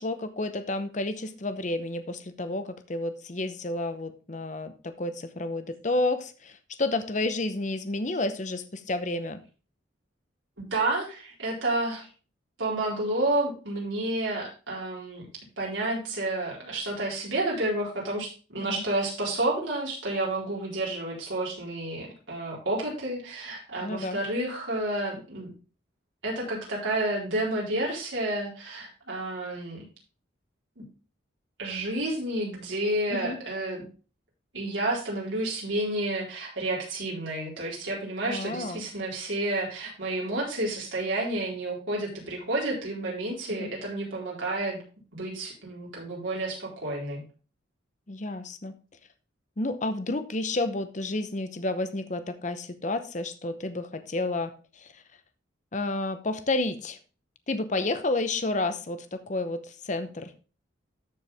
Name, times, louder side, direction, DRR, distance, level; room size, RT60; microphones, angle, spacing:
voice 1, 0.0-9.4 18.6-18.8 23.8-24.2 33.1-33.4 38.2-38.8 43.6-43.7 48.1-48.7 49.6-55.0 55.7-57.0 57.5-60.3, left 2 dB, 40° left, 10 dB, 0.8 m, -30 dB
voice 2, 10.6-12.1 12.6-15.3 15.6-25.5 26.2-29.8 30.8-30.9 31.6-33.8 34.5-44.8 45.1-47.2, right 2 dB, 75° right, -3 dB, 4.3 m, -30 dB
13.5 x 4.7 x 3.4 m, 0.35 s
head